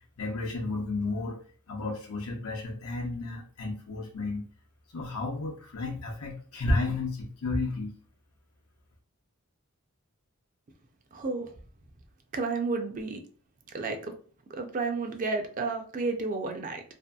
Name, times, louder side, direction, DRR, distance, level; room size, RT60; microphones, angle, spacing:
voice 1, 0.2-1.4 1.7-4.5 4.9-7.9, left 2 dB, 85° left, 0 dB, 0.7 m, -32 dB
voice 2, 11.1-11.5 12.3-13.2 13.7-14.1 14.5-16.8, right 3 dB, 35° right, 5 dB, 0.4 m, -31 dB
2.7 x 2.6 x 2.2 m, 0.43 s
head